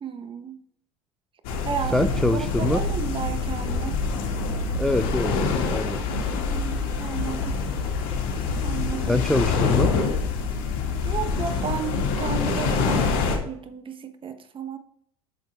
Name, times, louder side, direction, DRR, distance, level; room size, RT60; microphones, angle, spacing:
voice 1, 0.0-0.6 1.6-4.0 6.5-7.6 8.6-9.2 11.0-13.1 13.4-14.8, right 7 dB, 30° right, 9 dB, 1.2 m, -33 dB
sound 1, 1.4-13.4, left 4 dB, 65° left, 2.2 m, -25 dB
voice 2, 1.9-2.8 4.8-5.4 5.6-6.0 9.0-10.0, left 1 dB, 5° left, 10 dB, 0.4 m, -24 dB
8.8 x 6.4 x 3.5 m, 0.67 s
hypercardioid pair, 90°, 17 cm